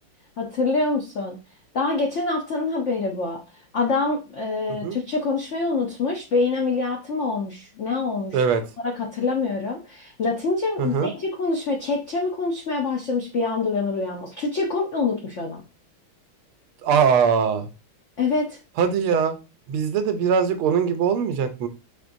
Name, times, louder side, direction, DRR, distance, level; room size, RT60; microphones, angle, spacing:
voice 1, 0.4-1.4 1.7-3.4 3.7-8.4 8.8-15.6 18.2-18.6, left 3 dB, 80° left, 1 dB, 0.6 m, -25 dB
voice 2, 10.8-11.1 16.8-17.7 18.8-19.3 19.7-21.7, right 6 dB, 90° right, 8 dB, 1.6 m, -21 dB
5.6 x 3.7 x 2.6 m, 0.30 s
omnidirectional pair, 2.3 m